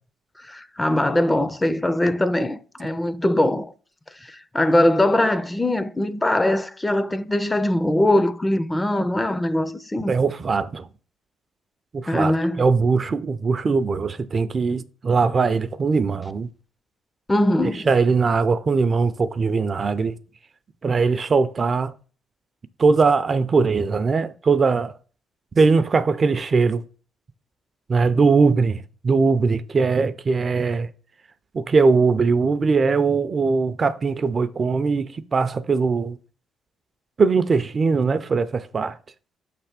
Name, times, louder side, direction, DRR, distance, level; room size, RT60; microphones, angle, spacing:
voice 1, 0.5-3.7 4.5-10.1 12.1-12.7 17.3-17.9, left 1 dB, 15° left, 0.5 m, -21 dB
voice 2, 10.1-10.9 11.9-16.5 17.6-20.2 20.8-21.9 22.8-24.9 25.6-26.8 27.9-30.9 31.5-36.2 37.2-38.9, right 4 dB, 40° right, 0.4 m, -20 dB
5.9 x 3.4 x 5.8 m
cardioid pair, 90°, 0 cm